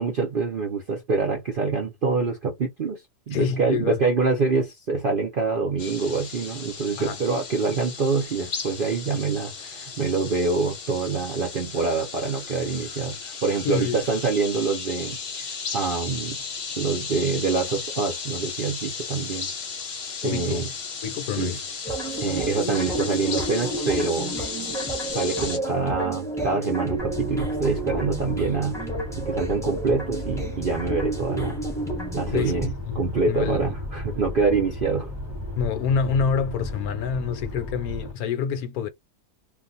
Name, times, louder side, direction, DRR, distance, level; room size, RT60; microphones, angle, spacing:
voice 1, 0.0-15.5 15.7-16.4 16.8-19.5 20.2-20.7 21.4-21.6 22.2-24.4 25.1-28.8 29.2-31.6 32.1-35.1, right 4 dB, 60° right, 0.5 m, -26 dB
voice 2, 3.3-4.0 7.0-7.2 13.6-14.0 20.2-20.7 21.0-21.6 32.3-33.6 35.6-38.9, left 6 dB, 70° left, 1.0 m, -27 dB
sound 1, 5.8-25.6, left 5 dB, 45° left, 0.8 m, -35 dB
sound 2, 21.8-32.7, right 1 dB, 5° left, 0.5 m, -31 dB
sound 3, 27.0-38.1, left 1 dB, 15° right, 1.0 m, -35 dB
2.5 x 2.2 x 3.9 m
omnidirectional pair, 1.7 m